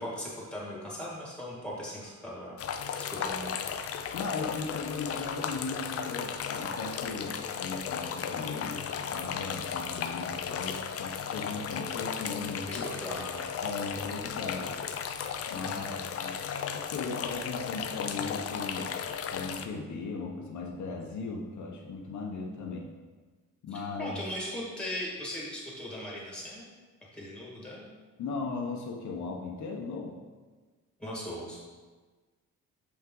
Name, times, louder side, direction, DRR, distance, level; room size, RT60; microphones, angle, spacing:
voice 1, 0.0-2.5 3.0-3.7 12.7-13.5 15.7-16.1 23.7-26.7 27.1-27.9 31.0-31.6, equal, 5° left, -5 dB, 1.9 m, -39 dB
sound 1, 2.6-19.7, left 7 dB, 50° left, 0.5 m, -35 dB
voice 2, 4.1-12.7 13.6-14.7 15.5-15.9 16.2-16.4 16.7-18.9 19.3-22.9 23.6-24.2 28.2-30.2, left 4 dB, 65° left, 0 dB, 0.9 m, -37 dB
6.5 x 5.7 x 3.8 m, 1.3 s
cardioid pair, 160°, 31 cm